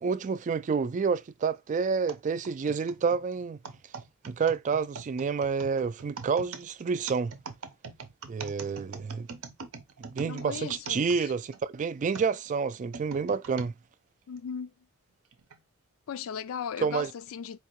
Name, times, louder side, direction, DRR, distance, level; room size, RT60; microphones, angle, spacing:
voice 1, 0.0-3.6 4.2-7.3 8.3-9.3 10.0-13.7 16.8-17.1, right 5 dB, 35° right, 0.3 m, -29 dB
sound 1, 2.1-11.6 12.1-13.7 14.4-14.5 15.3-15.6, right 4 dB, 70° right, 0.7 m, -43 dB
voice 2, 10.2-11.3 14.3-14.7 16.1-17.6, left 7 dB, 65° left, 0.4 m, -37 dB
4.5 x 2.7 x 2.9 m
head